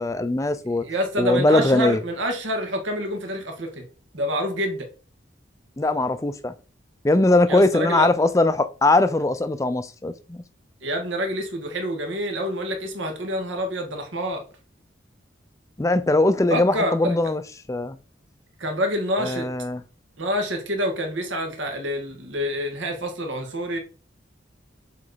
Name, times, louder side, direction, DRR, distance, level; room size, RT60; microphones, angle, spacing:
voice 1, 0.0-0.8 1.2-2.0 5.8-6.5 7.0-10.4 15.8-17.4 17.7-18.0 19.2-19.8, left 2 dB, 15° left, 0.4 m, -20 dB
voice 2, 0.6-3.9 4.1-4.9 7.5-8.1 10.8-14.4 16.5-17.2 18.6-19.5 20.2-23.8, equal, 80° right, 1.7 m, -27 dB
7.5 x 3.2 x 4.0 m
head